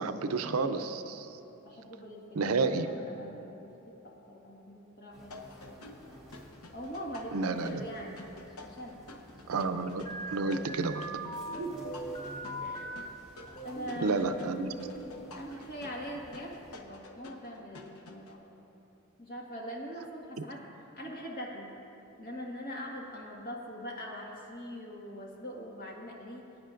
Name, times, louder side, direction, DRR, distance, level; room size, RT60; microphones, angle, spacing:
voice 1, 0.0-1.4 2.3-2.9 7.3-7.8 9.5-11.1 14.0-14.7 20.4-20.5, right 4 dB, 80° right, 9 dB, 0.5 m, -31 dB
voice 2, 1.6-5.8 6.7-8.3 8.6-9.0 11.4-11.9 12.6-12.9 13.6-14.5 15.3-18.5 19.2-20.6 21.0-21.7 22.2-26.5, equal, 40° left, -2 dB, 1.7 m, -42 dB
sound 1, 5.1-16.8, equal, 5° right, 2.1 m, -54 dB
sound 2, 5.3-18.4, left 2 dB, 85° left, 0.9 m, -51 dB
sound 3, 10.1-13.1 13.6-15.2, right 1 dB, 20° left, 1.4 m, -40 dB
21.0 x 9.5 x 2.5 m, 2.9 s
head